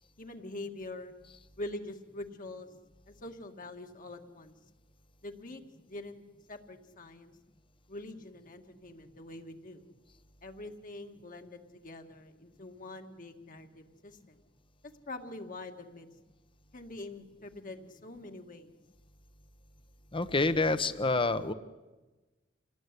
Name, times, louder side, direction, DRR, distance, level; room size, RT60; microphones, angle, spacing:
voice 1, 0.2-1.1 1.6-2.7 3.1-4.5 5.2-6.2 6.5-7.4 7.9-9.8 10.4-14.4 15.1-16.1 16.7-18.7, left 2 dB, 45° left, 5 dB, 2.1 m, -44 dB
voice 2, 20.1-21.5, left 3 dB, 25° left, 12 dB, 1.0 m, -27 dB
27.5 x 19.0 x 9.9 m, 1.2 s
head